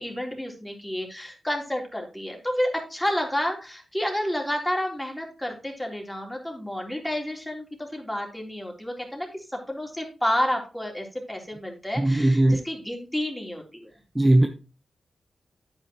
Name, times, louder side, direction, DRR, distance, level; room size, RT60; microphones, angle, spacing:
voice 1, 0.0-13.9, equal, 5° left, 3.6 m, -30 dB
voice 2, 12.0-12.6 14.1-14.5, right 1 dB, 20° right, 1.0 m, -19 dB
9.5 x 9.2 x 3.0 m
cardioid pair, 50°, 0 cm